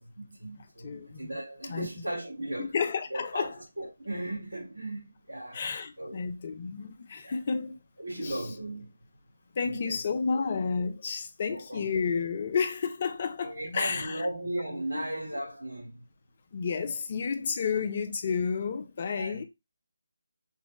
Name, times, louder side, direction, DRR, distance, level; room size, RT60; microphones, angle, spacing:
voice 1, 0.0-2.8 3.1-3.5 3.8-5.6 6.0-6.2 7.2-7.4 8.0-9.0 9.6-10.0 11.5-11.9 13.4-16.0 19.1-19.4, right 1 dB, 90° right, 2.4 m, -36 dB
voice 2, 0.6-1.3 1.7-1.9 2.6-3.5 5.5-7.8 8.2-8.4 9.5-14.2 14.9-15.0 16.5-19.4, left 5 dB, 40° left, 0.6 m, -31 dB
5.7 x 2.3 x 3.5 m
figure-of-eight pair, 155°, 0 cm